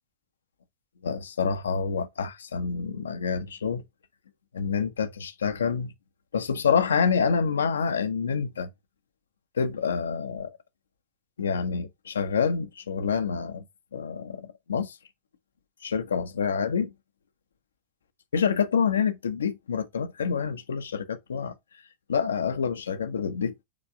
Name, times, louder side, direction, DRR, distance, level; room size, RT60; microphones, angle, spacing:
voice 1, 1.0-3.8 4.5-5.9 6.3-8.7 9.5-10.6 11.4-13.6 13.9-15.0 15.8-16.9 18.3-21.5 22.1-23.6, left 6 dB, 70° left, 1.0 m, -27 dB
7.5 x 3.5 x 4.4 m
figure-of-eight pair, 90°, 0 cm